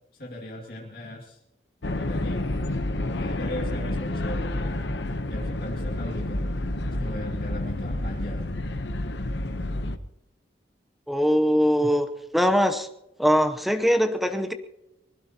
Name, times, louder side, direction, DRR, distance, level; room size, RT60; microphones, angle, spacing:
voice 1, 0.1-1.4 1.9-2.4 3.2-4.8 5.3-6.4 7.0-8.5 11.8-11.9, left 1 dB, 50° left, -2 dB, 2.4 m, -37 dB
sound 1, 1.8-10.0, left 1 dB, 70° left, 0.9 m, -29 dB
voice 2, 11.1-12.9 13.2-14.5, equal, ahead, 7 dB, 0.8 m, -22 dB
24.5 x 20.0 x 2.9 m, 0.91 s
head